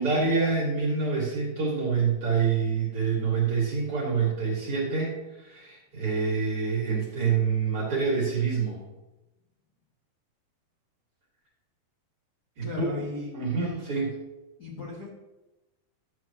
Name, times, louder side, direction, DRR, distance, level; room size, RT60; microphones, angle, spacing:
voice 1, 0.0-5.1 5.4-8.8 12.6-12.7 13.3-14.1, right 5 dB, 40° right, -4 dB, 2.4 m, -26 dB
voice 2, 12.6-13.8 14.6-15.1, left 2 dB, 45° left, -7 dB, 1.3 m, -37 dB
12.5 x 8.3 x 2.9 m, 1.0 s
omnidirectional pair, 4.7 m